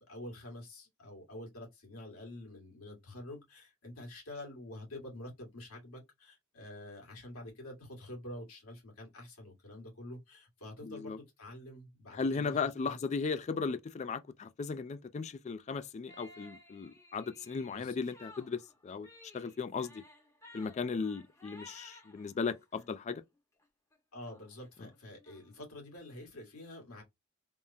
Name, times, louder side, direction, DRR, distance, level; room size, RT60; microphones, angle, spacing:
voice 1, 0.1-13.0 17.7-18.0 24.1-27.0, left 1 dB, 85° left, 1.7 m, -47 dB
voice 2, 10.8-11.2 12.1-19.1 19.3-20.0 20.5-23.2, left 5 dB, 30° left, 0.3 m, -36 dB
sound 1, 16.1-22.9 23.3-23.7 23.9-24.0 24.2-25.7, left 2 dB, 15° left, 0.8 m, -57 dB
3.5 x 2.0 x 2.6 m
head